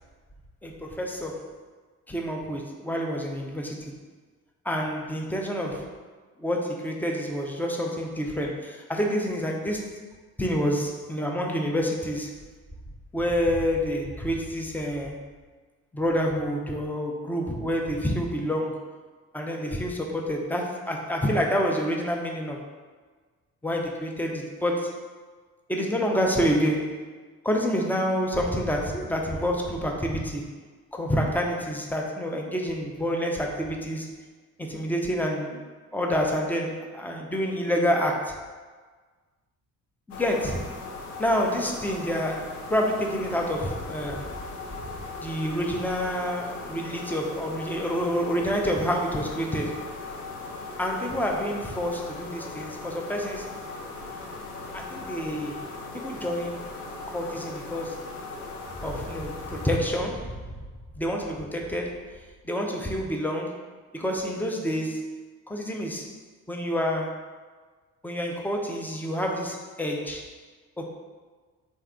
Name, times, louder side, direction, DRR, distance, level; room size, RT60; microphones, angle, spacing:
voice 1, 0.6-1.5 2.1-4.0 4.6-5.9 6.4-10.0 10.4-12.3 13.1-15.2 15.9-18.9 19.3-22.6 23.6-25.0 25.7-27.1 27.4-30.5 30.9-34.1 34.6-35.6 35.9-38.4 40.1-40.7 41.2-44.4 45.2-49.8 50.8-53.5 54.7-55.6 56.1-56.7 57.1-58.2 58.8-60.3 61.0-62.0 62.4-63.6 63.9-65.2 65.5-66.1 66.5-67.3 68.0-70.3 70.8-70.9, equal, 5° left, 0 dB, 0.3 m, -28 dB
sound 1, 40.1-59.8, left 3 dB, 85° left, 0.5 m, -39 dB
3.5 x 2.2 x 3.5 m, 1.4 s
figure-of-eight pair, 50°, 44 cm